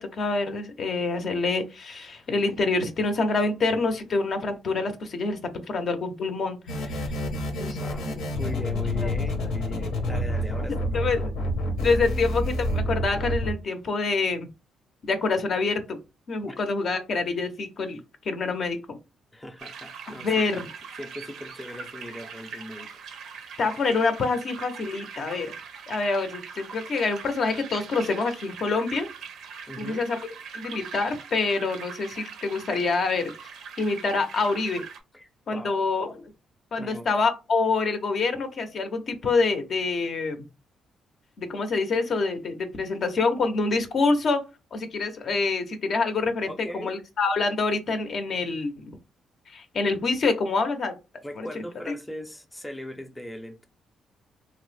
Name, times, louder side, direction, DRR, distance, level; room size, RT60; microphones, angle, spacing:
voice 1, 0.0-7.1 7.6-8.3 9.0-9.1 10.9-11.2 11.8-14.5 15.0-16.0 16.3-19.0 20.2-20.7 23.6-25.5 25.9-29.1 29.8-33.3 33.8-34.8 35.5-36.2 36.7-40.5 41.4-44.4 44.7-46.5 46.8-48.7 49.5-50.9 51.4-51.9, left 3 dB, 55° left, 0.6 m, -26 dB
sound 1, 6.7-13.5, left 1 dB, 85° left, 0.8 m, -28 dB
voice 2, 7.8-11.0 16.5-16.6 19.3-20.7 21.0-22.9 29.7-30.1 35.1-35.8 36.8-37.1 46.5-46.9 51.2-53.7, left 1 dB, 10° left, 0.5 m, -39 dB
sound 2, 19.6-35.0, right 6 dB, 75° right, 0.5 m, -42 dB
3.1 x 2.0 x 3.2 m
cardioid pair, 90°, 0 cm